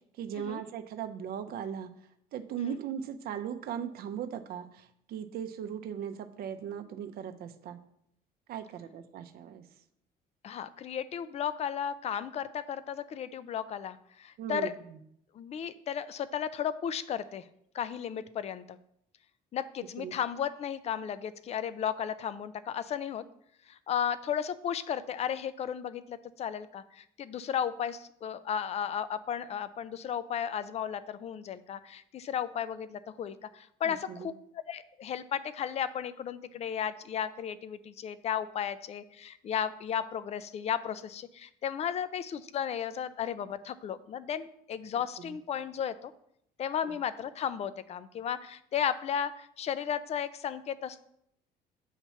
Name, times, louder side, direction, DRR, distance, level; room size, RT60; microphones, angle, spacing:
voice 1, 0.2-1.9 2.3-7.8 8.5-9.6 14.4-14.7 20.0-20.1 33.8-34.3, right 9 dB, 65° right, 7 dB, 0.6 m, -38 dB
voice 2, 10.4-14.7 15.3-17.5 17.7-18.8 19.5-23.2 23.7-34.3 34.7-46.1 46.6-51.0, left 8 dB, 40° left, 14 dB, 0.4 m, -34 dB
8.1 x 3.0 x 5.6 m, 0.72 s
cardioid pair, 110°, 17 cm